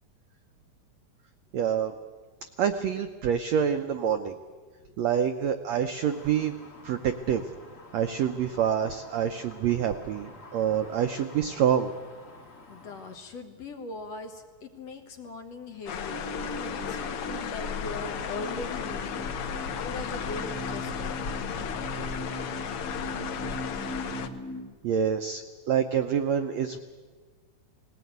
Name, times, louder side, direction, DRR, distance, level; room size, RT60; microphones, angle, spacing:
voice 1, 1.5-1.9 2.6-4.4 5.0-6.5 6.8-7.4 7.9-11.9 24.8-26.8, right 8 dB, 80° right, 8 dB, 1.5 m, -27 dB
sound 1, 6.1-13.2, left 2 dB, 30° left, 1.8 m, -50 dB
voice 2, 12.7-21.5, left 3 dB, 55° left, 5 dB, 2.1 m, -41 dB
sound 2, 15.9-24.3, left 7 dB, 80° left, 1.2 m, -34 dB
sound 3, 16.1-24.6, equal, 5° left, 2.8 m, -40 dB
19.0 x 19.0 x 9.4 m, 1.5 s
omnidirectional pair, 4.0 m